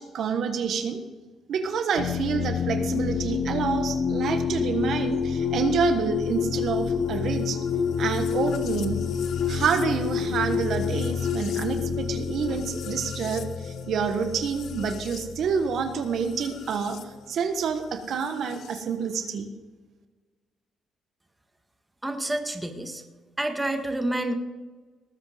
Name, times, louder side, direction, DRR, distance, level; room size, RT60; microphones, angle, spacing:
voice 1, 0.1-1.0 1.5-7.6 8.0-9.0 9.5-19.5, right 6 dB, 65° right, 7 dB, 1.4 m, -28 dB
sound 1, 2.0-17.0 18.2-18.8, left 7 dB, 70° left, 1.0 m, -29 dB
voice 2, 22.0-23.0 23.4-24.3, right 1 dB, 10° right, 5 dB, 1.7 m, -28 dB
19.0 x 8.1 x 5.1 m, 1.3 s
cardioid pair, 90°, 0 cm